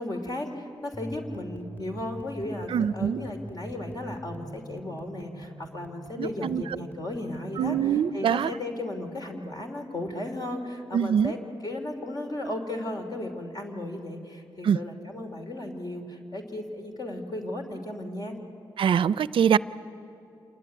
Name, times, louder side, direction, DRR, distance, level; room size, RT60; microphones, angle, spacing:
voice 1, 0.0-11.4 11.6-18.4, left 1 dB, 45° left, 3 dB, 3.0 m, -35 dB
sound 1, 0.9-7.8, right 1 dB, 20° left, 2.6 m, -43 dB
voice 2, 2.7-3.3 6.2-6.6 7.6-8.5 10.9-11.3 14.6-14.8 18.8-19.6, right 8 dB, 75° right, 18 dB, 0.5 m, -23 dB
27.0 x 19.0 x 9.4 m, 2.8 s
cardioid pair, 65°, 9 cm